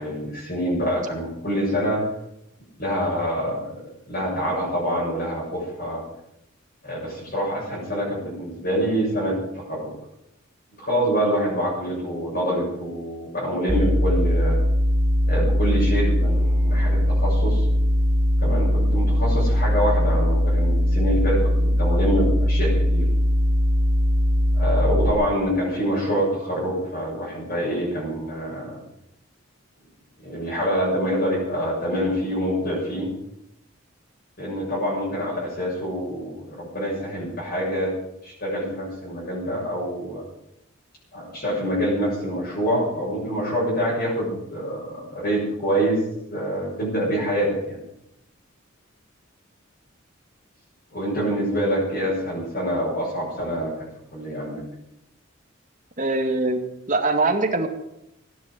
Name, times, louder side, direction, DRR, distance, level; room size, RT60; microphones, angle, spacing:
voice 1, 0.0-2.0 2.8-6.0 6.8-9.9 10.8-14.6 15.3-17.7 18.4-23.1 24.5-28.8 30.2-33.1 34.4-37.9 38.2-40.2 41.1-46.0 46.3-47.8 50.9-53.7 54.1-54.6, equal, 45° left, -6 dB, 7.2 m, -26 dB
sound 1, 13.7-25.1, equal, 20° right, 1.6 m, -20 dB
voice 2, 56.0-57.7, right 2 dB, 40° right, 4 dB, 2.0 m, -23 dB
15.5 x 10.5 x 7.8 m, 0.83 s
head